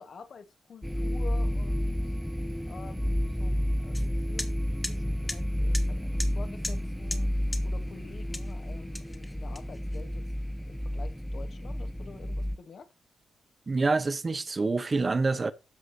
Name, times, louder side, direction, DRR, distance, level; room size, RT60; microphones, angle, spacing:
voice 1, 0.0-2.1 2.7-3.6 3.8-4.6 4.9-7.3 7.6-10.3 10.7-12.9, left 5 dB, 60° left, 1.6 m, -48 dB
sound 1, 0.8-12.6, equal, ahead, 0.5 m, -31 dB
sound 2, 3.9-4.1 4.4-4.5 4.8-5.0 5.3-5.4 5.7-5.9 6.2-6.3 6.6-6.8 7.1-7.2 7.5-7.6 8.3-8.5 9.0-10.0, left 1 dB, 20° left, 1.7 m, -36 dB
voice 2, 13.7-15.5, right 3 dB, 40° right, 1.0 m, -26 dB
13.0 x 4.9 x 2.8 m
hypercardioid pair, 45°, 0 cm